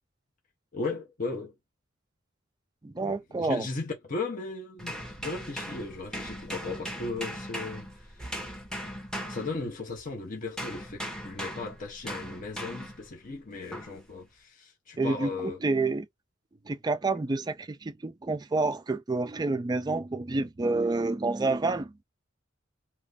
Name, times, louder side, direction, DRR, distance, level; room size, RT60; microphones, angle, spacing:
voice 1, 0.7-1.6 3.0-8.2 9.3-15.6, left 3 dB, 40° left, 0.7 m, -36 dB
voice 2, 2.8-3.7 15.0-16.1 16.7-21.9, right 3 dB, 20° right, 0.3 m, -28 dB
sound 1, 4.8-10.1 10.6-13.1 13.7-14.0, equal, 5° left, 1.0 m, -38 dB
2.9 x 2.5 x 3.3 m
head